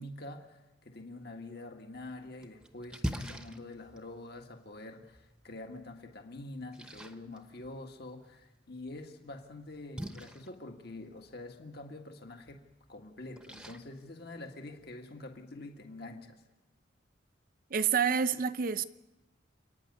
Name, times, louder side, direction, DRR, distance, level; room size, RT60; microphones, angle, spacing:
voice 1, 0.0-12.6 12.9-16.4, left 2 dB, 55° left, 1.7 m, -46 dB
Splash splatter, 1.9-14.9, equal, 5° right, 0.9 m, -46 dB
voice 2, 17.7-18.8, right 6 dB, 45° right, 0.6 m, -28 dB
28.5 x 9.6 x 9.4 m
head